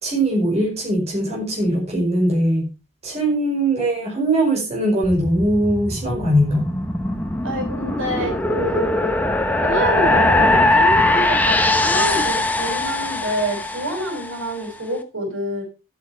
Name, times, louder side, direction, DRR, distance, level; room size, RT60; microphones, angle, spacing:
voice 1, 0.0-2.7 3.0-6.7, right 1 dB, 30° right, -1 dB, 5.1 m, -20 dB
sound 1, 5.0-14.4, left 2 dB, 10° left, 1.0 m, -21 dB
voice 2, 7.4-9.1 9.6-15.6, right 1 dB, 75° right, 2 dB, 5.5 m, -26 dB
12.5 x 8.7 x 4.7 m, 0.31 s
head